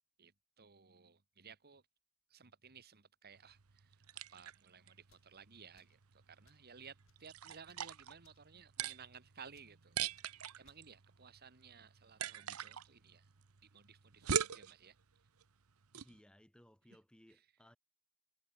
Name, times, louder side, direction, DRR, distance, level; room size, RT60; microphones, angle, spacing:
voice 1, 0.6-1.8 2.3-13.3 13.7-14.9 17.3-17.5, right 6 dB, 45° right, 1.6 m, -58 dB
sound 1, 3.3-16.2, right 9 dB, 85° right, 0.9 m, -44 dB
sound 2, 5.1-5.3 5.7-6.0 6.4-6.7 7.0-7.3 7.6-7.9 8.2-8.5 8.8-9.0 9.5-9.7 10.1-10.3 10.6-10.8, left 5 dB, 65° left, 5.0 m, -73 dB
voice 2, 15.9-17.8, equal, 5° left, 1.0 m, -63 dB
head